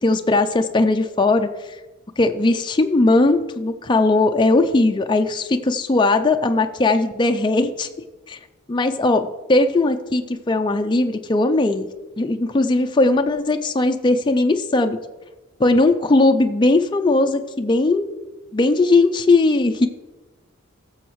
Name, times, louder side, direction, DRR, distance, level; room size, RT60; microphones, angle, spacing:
voice 1, 0.0-1.5 2.2-7.9 8.3-8.4 8.7-11.9 12.2-15.0 15.6-18.1 18.5-19.9, left 2 dB, 20° left, 7 dB, 0.4 m, -18 dB
14.0 x 7.1 x 3.1 m, 1.2 s
head